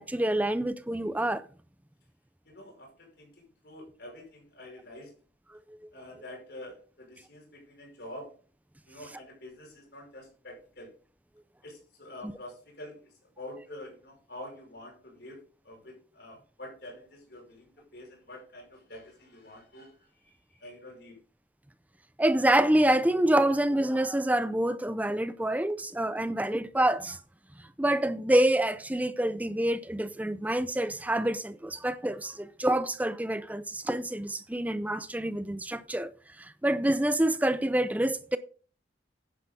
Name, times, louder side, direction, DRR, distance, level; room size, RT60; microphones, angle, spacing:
voice 1, 0.0-1.4 22.2-27.2 27.8-36.1 36.4-38.4, right 1 dB, 10° right, 0.6 m, -27 dB
voice 2, 2.5-5.1 5.9-8.4 8.9-10.9 11.6-19.9 20.2-21.2, left 1 dB, 65° left, 5.4 m, -47 dB
10.5 x 10.0 x 3.7 m
head